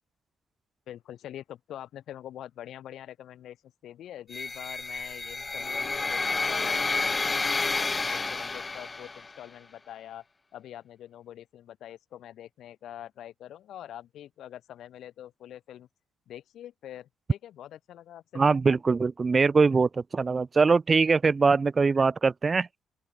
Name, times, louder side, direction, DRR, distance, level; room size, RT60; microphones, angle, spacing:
voice 1, 0.9-10.2 10.5-15.9 16.3-18.8, left 11 dB, 75° left, 1.9 m, -45 dB
sound 1, 4.3-9.4, left 3 dB, 25° left, 0.7 m, -30 dB
voice 2, 18.4-22.7, right 4 dB, 30° right, 0.4 m, -22 dB
open air
cardioid pair, 90°, 0 cm